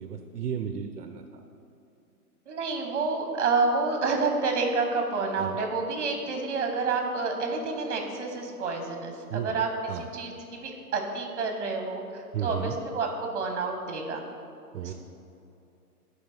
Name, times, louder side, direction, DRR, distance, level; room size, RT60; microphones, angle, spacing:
voice 1, 0.0-1.4 5.4-5.6 9.3-9.6 9.9-10.1 12.3-12.7 14.7-14.9, right 8 dB, 75° right, 6 dB, 0.6 m, -33 dB
voice 2, 2.5-9.7 10.1-14.2 14.8-14.9, right 4 dB, 50° right, 4 dB, 1.1 m, -29 dB
10.5 x 4.2 x 3.4 m, 2.7 s
hypercardioid pair, 170°, 47 cm